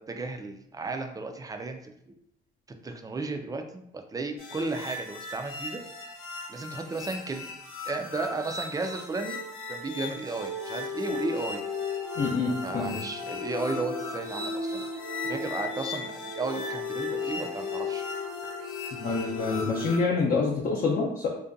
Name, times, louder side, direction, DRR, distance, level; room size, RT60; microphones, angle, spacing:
voice 1, 0.0-1.8 2.1-2.2 2.8-5.8 6.5-7.5 7.9-9.4 9.7-11.6 12.6-14.9 15.2-18.0, right 3 dB, 20° right, 5 dB, 0.3 m, -34 dB
sound 1, 4.4-20.0, left 3 dB, 80° left, 0.7 m, -35 dB
voice 2, 12.2-13.0 19.0-21.3, left 4 dB, 45° left, -2 dB, 0.5 m, -27 dB
2.6 x 2.2 x 2.5 m, 0.74 s
cardioid pair, 90°, 20 cm